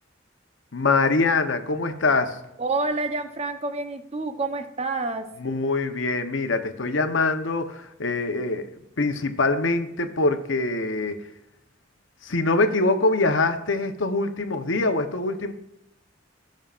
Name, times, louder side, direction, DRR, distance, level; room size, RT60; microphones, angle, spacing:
voice 1, 0.7-2.4 5.4-8.7 9.0-11.3 12.2-15.5, left 3 dB, 90° left, 7 dB, 0.9 m, -24 dB
voice 2, 2.6-5.3, right 3 dB, 35° right, 7 dB, 0.9 m, -28 dB
18.0 x 6.5 x 2.5 m, 0.92 s
head